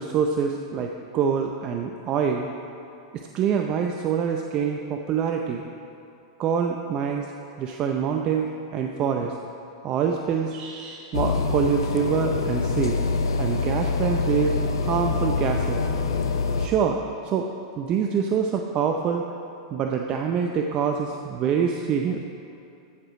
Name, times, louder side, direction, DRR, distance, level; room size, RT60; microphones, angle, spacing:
voice 1, 0.0-2.5 3.1-5.6 6.4-7.3 7.6-9.3 9.8-13.0 13.4-14.5 14.8-15.8 16.6-17.5 17.8-19.3 19.7-22.2, right 7 dB, 35° right, 3 dB, 0.6 m, -25 dB
sound 1, 11.1-16.7, left 4 dB, 85° left, 0.8 m, -25 dB
14.0 x 5.0 x 5.9 m, 2.7 s
hypercardioid pair, 115°, 2 cm